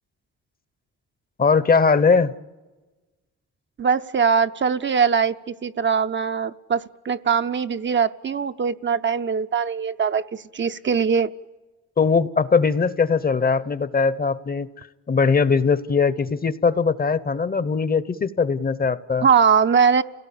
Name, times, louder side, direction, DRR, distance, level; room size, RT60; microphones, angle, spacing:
voice 1, 1.4-2.3 12.0-19.3, left 5 dB, 30° left, 16 dB, 0.9 m, -20 dB
voice 2, 3.8-11.3 19.2-20.0, right 6 dB, 40° right, 9 dB, 0.7 m, -21 dB
29.5 x 17.5 x 8.6 m, 1.2 s
cardioid pair, 90°, 30 cm